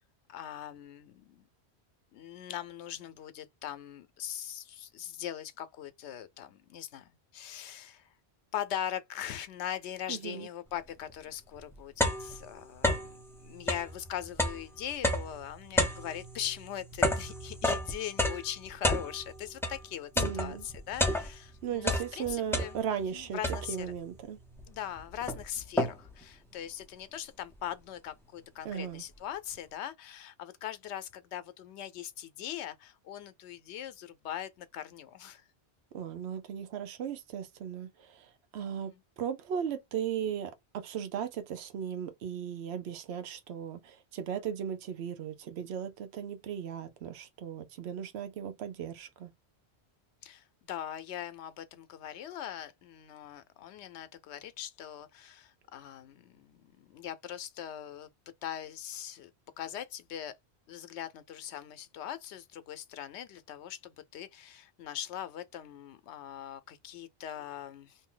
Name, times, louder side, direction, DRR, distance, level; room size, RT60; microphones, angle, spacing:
voice 1, 0.3-1.5 2.1-8.1 8.5-22.8 23.1-23.9 24.7-35.4 38.6-39.0 50.2-58.1 58.4-59.3 59.6-60.3 60.7-68.0, left 10 dB, 85° left, 0.9 m, -41 dB
voice 2, 10.1-10.5 20.2-20.7 21.6-23.4 23.7-24.4 28.6-29.0 35.9-49.3, right 8 dB, 75° right, 0.9 m, -37 dB
sound 1, 11.1-11.2 11.6-13.2 13.6-19.8 20.2-21.5 21.8-23.1 23.4-24.0 24.6-24.7 25.0-26.2, left 1 dB, 5° left, 0.5 m, -31 dB
2.7 x 2.7 x 3.8 m
omnidirectional pair, 1.1 m